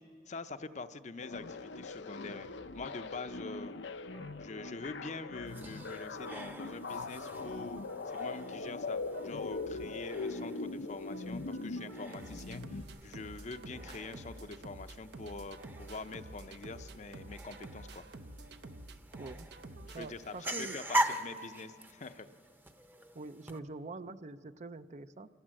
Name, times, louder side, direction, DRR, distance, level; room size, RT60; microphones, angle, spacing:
voice 1, 0.3-3.7 4.4-18.0 19.8-22.3, left 3 dB, 40° left, 10 dB, 0.7 m, -45 dB
sound 1, 1.2-12.8, left 3 dB, 75° left, 0.7 m, -41 dB
sound 2, 4.1-20.8, right 2 dB, 65° right, 0.9 m, -51 dB
sound 3, 5.5-23.6, right 1 dB, 10° right, 0.8 m, -42 dB
voice 2, 19.9-20.8 23.1-25.3, right 3 dB, 40° right, 12 dB, 0.5 m, -45 dB
26.5 x 17.5 x 7.6 m, 2.2 s
head